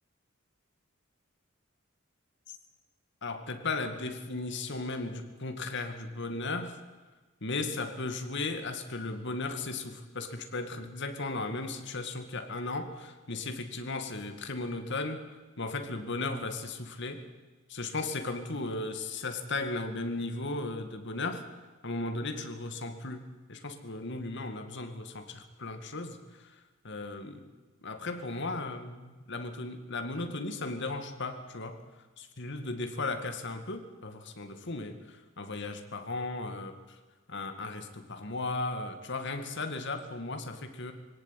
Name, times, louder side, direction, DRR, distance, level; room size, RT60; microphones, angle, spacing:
voice 1, 3.2-6.8 7.4-15.2 15.6-17.2 17.7-21.4 21.8-26.5 26.8-27.4 27.8-29.0 29.3-31.8 32.2-36.7 37.3-40.9, left 3 dB, 60° left, 7 dB, 2.2 m, -36 dB
21.0 x 17.5 x 9.3 m, 1.3 s
head